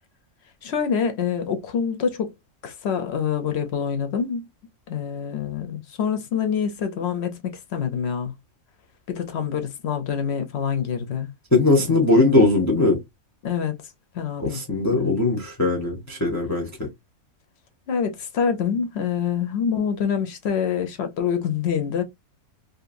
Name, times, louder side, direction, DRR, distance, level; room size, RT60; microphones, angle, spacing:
voice 1, 0.6-2.3 2.6-4.4 4.9-8.3 9.1-11.3 11.9-12.2 13.4-13.8 14.1-14.6 14.9-15.2 17.9-22.0, left 7 dB, 60° left, 0.7 m, -26 dB
voice 2, 11.5-13.0 14.4-16.9, left 2 dB, 20° left, 0.4 m, -20 dB
2.7 x 2.6 x 2.5 m
omnidirectional pair, 1.5 m